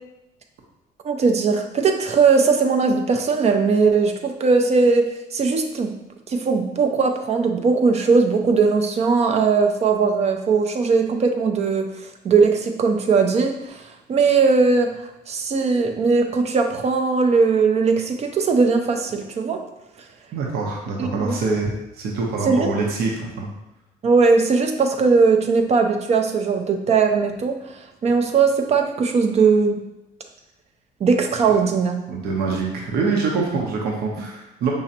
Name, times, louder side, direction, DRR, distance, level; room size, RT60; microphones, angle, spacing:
voice 1, 1.0-5.9 6.3-13.8 14.1-14.9 15.3-19.6 21.2-21.4 22.5-22.7 24.0-27.6 28.0-29.8 31.0-32.0, right 4 dB, 40° right, 5 dB, 0.5 m, -19 dB
voice 2, 20.3-21.7 22.0-23.5 32.1-34.7, right 4 dB, 70° right, -1 dB, 0.8 m, -24 dB
5.1 x 3.1 x 2.8 m, 0.91 s
cardioid pair, 110°, 17 cm